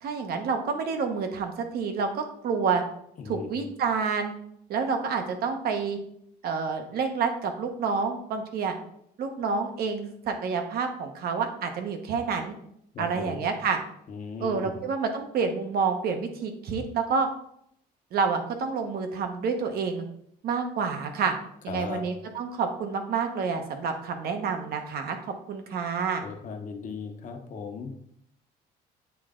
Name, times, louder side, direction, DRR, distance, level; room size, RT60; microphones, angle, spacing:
voice 1, 0.0-2.8 3.2-4.3 4.7-6.0 6.4-8.7 9.2-12.5 13.0-13.8 14.4-17.3 18.1-20.0 20.4-21.3 21.6-25.2 25.5-26.2, right 5 dB, 65° right, 6 dB, 1.0 m, -28 dB
voice 2, 3.2-3.5 12.9-13.4 14.1-14.7 21.7-22.0 26.2-27.9, left 5 dB, 50° left, 4 dB, 1.0 m, -37 dB
8.3 x 3.2 x 3.7 m, 0.70 s
cardioid pair, 110°, 17 cm